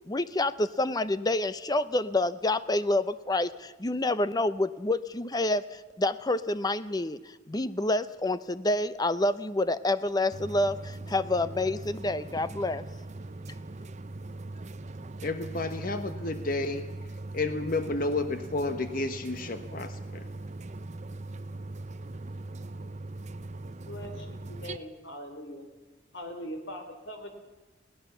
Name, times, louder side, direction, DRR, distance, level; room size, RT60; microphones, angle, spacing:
voice 1, 0.1-12.8, left 2 dB, 20° left, 14 dB, 0.6 m, -28 dB
sound 1, 10.3-24.8, right 2 dB, 40° right, 0.7 m, -40 dB
voice 2, 15.2-16.8 17.3-20.2, left 2 dB, 50° left, 8 dB, 1.2 m, -31 dB
voice 3, 23.7-25.6 26.1-27.3, equal, 75° left, 5 dB, 3.5 m, -41 dB
21.5 x 17.5 x 7.0 m, 1.1 s
head